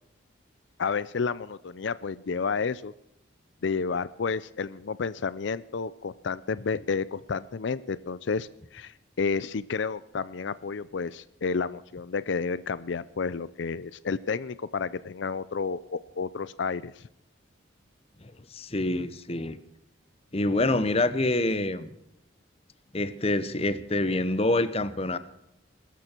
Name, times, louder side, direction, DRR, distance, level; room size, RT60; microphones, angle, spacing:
voice 1, 0.8-2.9 3.6-17.0, left 5 dB, 70° left, 17 dB, 0.5 m, -31 dB
voice 2, 18.5-19.6 20.3-21.9 22.9-25.2, left 2 dB, 30° left, 14 dB, 0.9 m, -26 dB
22.0 x 13.0 x 4.5 m, 0.79 s
head